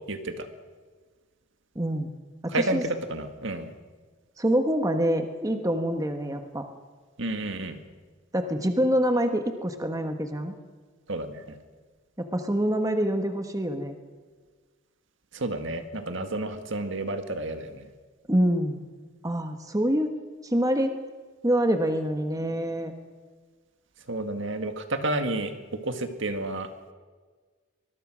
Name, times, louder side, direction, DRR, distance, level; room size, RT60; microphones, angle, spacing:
voice 1, 0.1-0.5 2.5-3.7 7.2-7.8 11.1-11.6 15.3-17.9 24.1-26.7, right 2 dB, 60° right, 7 dB, 2.0 m, -31 dB
voice 2, 1.7-2.1 2.4-2.8 4.4-6.7 8.3-10.5 12.2-14.0 18.3-18.8 19.2-20.2 20.4-20.9 21.4-22.9, equal, 15° right, 6 dB, 1.3 m, -26 dB
24.5 x 21.5 x 6.3 m, 1.5 s
head